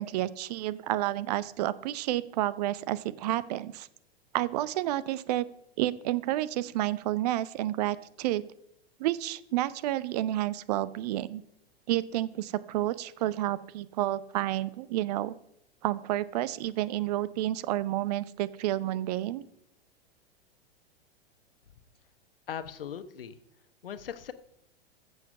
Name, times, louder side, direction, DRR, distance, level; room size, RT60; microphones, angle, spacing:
voice 1, 0.0-3.9 4.3-5.5 5.8-8.5 9.0-11.4 11.9-15.3 15.8-19.4, right 14 dB, 40° right, 18 dB, 0.6 m, -30 dB
voice 2, 22.5-23.4 23.8-24.3, left 8 dB, 65° left, 12 dB, 1.1 m, -39 dB
14.5 x 7.2 x 5.5 m, 0.77 s
figure-of-eight pair, 100°, 30 cm